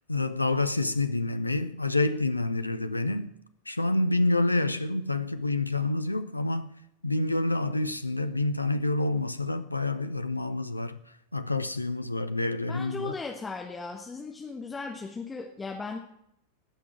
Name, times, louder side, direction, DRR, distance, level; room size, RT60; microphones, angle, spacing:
voice 1, 0.1-3.3 3.7-6.7 7.0-11.0 11.3-13.1, left 2 dB, 85° left, 0.7 m, -28 dB
voice 2, 12.7-16.0, left 4 dB, 15° left, 1.4 m, -37 dB
17.5 x 6.1 x 8.7 m
figure-of-eight pair, 90°, 0 cm